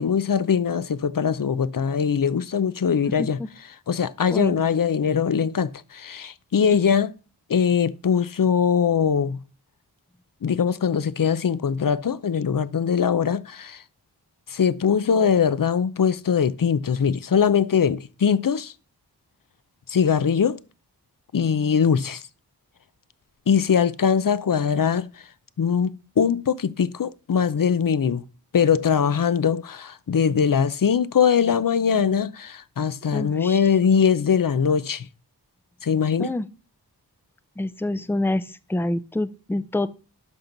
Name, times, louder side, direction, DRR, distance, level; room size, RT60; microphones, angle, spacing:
voice 1, 0.0-3.4 3.9-7.1 7.5-9.4 10.4-13.8 14.5-18.7 19.9-20.6 21.3-22.2 23.5-25.2 25.6-28.2 28.5-35.1 35.8-36.3, left 7 dB, 55° left, 0.6 m, -21 dB
voice 2, 33.1-33.6 36.2-36.5 37.6-39.9, left 1 dB, 5° left, 0.5 m, -27 dB
11.0 x 6.0 x 3.9 m
wide cardioid pair, 55°, 39 cm